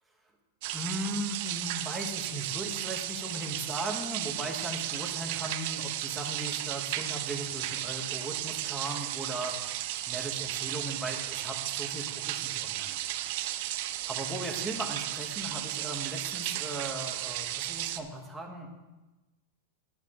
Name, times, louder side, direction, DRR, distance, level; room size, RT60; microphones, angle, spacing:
sound 1, 0.6-18.0, right 14 dB, 50° right, 0.6 m, -34 dB
voice 1, 0.7-9.8 10.1-13.0 13.4-13.7 14.1-18.7, right 1 dB, 5° right, 0 dB, 1.3 m, -38 dB
11.5 x 9.1 x 3.7 m, 1.1 s
supercardioid pair, 160°, 0 cm